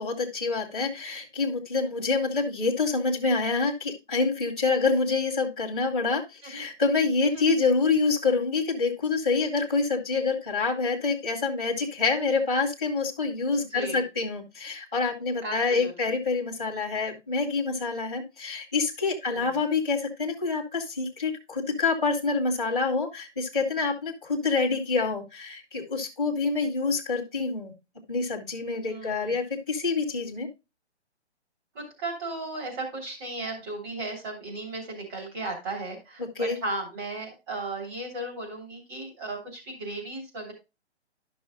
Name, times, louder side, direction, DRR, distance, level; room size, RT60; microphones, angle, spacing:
voice 1, 0.0-27.7 28.1-30.5 36.3-36.6, left 4 dB, 5° right, -15 dB, 0.5 m, -27 dB
voice 2, 7.2-7.5 13.7-14.0 15.4-15.9 19.3-19.6 28.8-29.3 31.7-40.5, right 2 dB, 20° right, -1 dB, 3.0 m, -36 dB
12.0 x 6.1 x 2.4 m, 0.26 s
hypercardioid pair, 165°, 34 cm